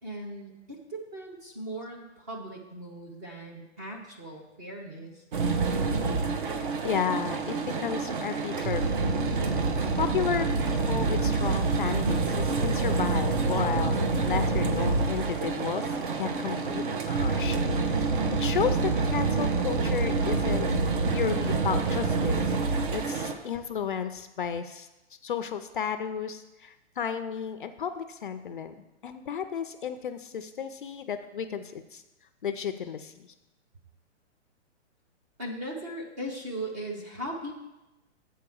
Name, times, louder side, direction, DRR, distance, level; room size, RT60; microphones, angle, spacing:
voice 1, 0.0-5.2 35.4-37.5, right 1 dB, 15° right, 1 dB, 0.5 m, -38 dB
sound 1, 5.3-23.3, right 4 dB, 45° right, 0.8 m, -27 dB
voice 2, 6.8-9.0 10.0-18.1 18.4-20.7 21.1-22.6 22.9-24.9 25.2-28.7 29.0-32.0 32.4-33.3, left 7 dB, 45° left, 10 dB, 0.4 m, -33 dB
7.5 x 4.7 x 6.9 m, 0.99 s
hypercardioid pair, 170°, 36 cm